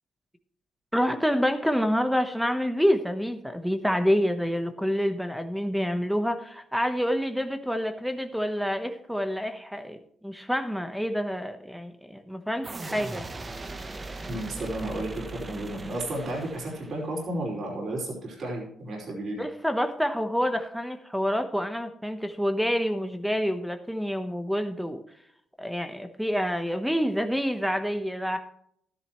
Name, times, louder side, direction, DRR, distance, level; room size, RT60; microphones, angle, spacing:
voice 1, 0.9-10.0 10.2-13.2 19.4-25.0 25.6-28.4, equal, ahead, 8 dB, 1.0 m, -27 dB
sound 1, 12.6-17.3, right 2 dB, 25° right, 1.0 m, -39 dB
voice 2, 14.3-19.4, right 1 dB, 55° right, -2 dB, 4.9 m, -33 dB
12.5 x 11.0 x 3.1 m, 0.71 s
cardioid pair, 90°, 0 cm